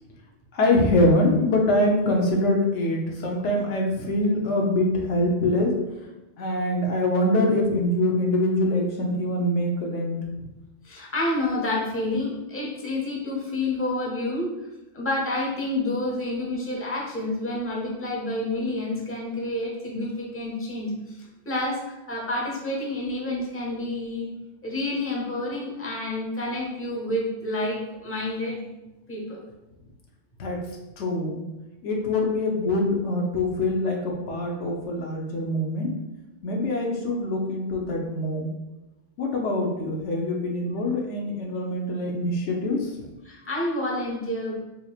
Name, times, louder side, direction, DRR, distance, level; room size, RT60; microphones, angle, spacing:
voice 1, 0.5-5.8 6.4-10.5 30.4-30.6 31.0-31.4 31.8-35.9 36.4-38.5 39.2-42.9, left 1 dB, 90° left, 1 dB, 1.1 m, -24 dB
voice 2, 10.8-14.5 14.9-21.2 21.4-24.3 24.6-28.6 29.1-29.4 43.2-44.5, left 1 dB, 15° left, -3 dB, 0.7 m, -29 dB
4.4 x 2.9 x 2.4 m, 1.0 s
omnidirectional pair, 1.2 m